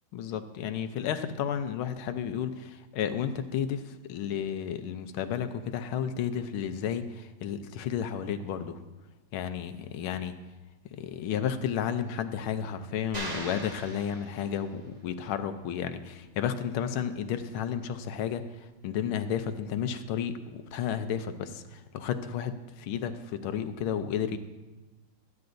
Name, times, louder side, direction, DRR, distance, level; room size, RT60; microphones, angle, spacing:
voice 1, 0.1-8.8 9.3-10.3 11.0-24.4, left 8 dB, 85° left, 9 dB, 1.6 m, -32 dB
sound 1, 13.1-14.9, right 1 dB, 20° right, 1.3 m, -39 dB
23.0 x 9.6 x 2.6 m, 1.1 s
omnidirectional pair, 2.3 m